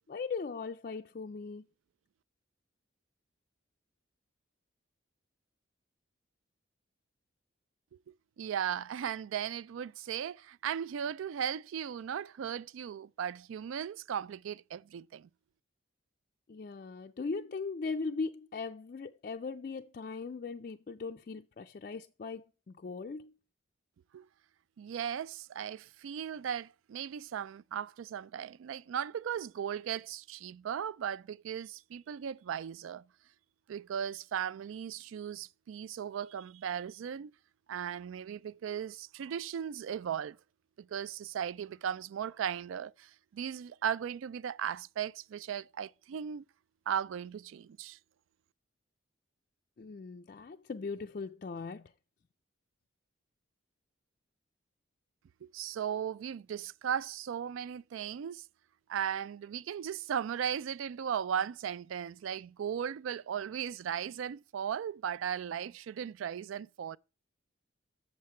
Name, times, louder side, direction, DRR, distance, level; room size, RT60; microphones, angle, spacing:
voice 1, 0.1-1.6 16.5-22.4 22.7-23.3 49.8-51.9, left 4 dB, 45° left, 0.3 m, -39 dB
voice 2, 8.4-15.3 24.1-24.3 24.8-33.0 33.7-37.3 37.7-40.4 40.8-46.4 46.9-48.0 55.4-58.5 58.9-67.0, right 8 dB, 80° right, 0.3 m, -37 dB
7.6 x 7.2 x 4.3 m
head